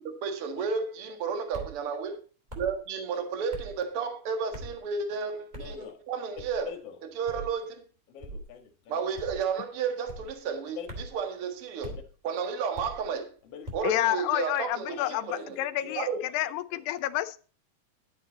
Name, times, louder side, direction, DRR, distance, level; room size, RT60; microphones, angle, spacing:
voice 1, 0.0-2.2 2.6-6.7 7.2-7.8 8.9-10.8 11.1-11.9 12.2-13.3 13.7-15.5 16.0-16.2, right 6 dB, 50° right, 7 dB, 1.7 m, -32 dB
sound 1, 1.5-1.8 2.5-2.8 3.5-3.7 4.5-4.8 5.5-5.8 6.4-6.7 7.3-7.5 8.2-8.5 9.1-9.5 10.1-10.3 10.9-11.2 11.8-12.0 12.7-13.0 13.6-13.9, right 1 dB, 15° right, 1.9 m, -41 dB
voice 2, 5.5-6.0 6.6-7.0 8.1-9.0 10.8-10.9 11.8-12.0 13.4-14.0 14.9-16.8, left 8 dB, 50° left, 5 dB, 2.0 m, -44 dB
voice 3, 13.8-15.3 15.6-17.4, left 14 dB, 85° left, 12 dB, 2.7 m, -29 dB
11.5 x 8.9 x 4.0 m, 0.38 s
omnidirectional pair, 4.7 m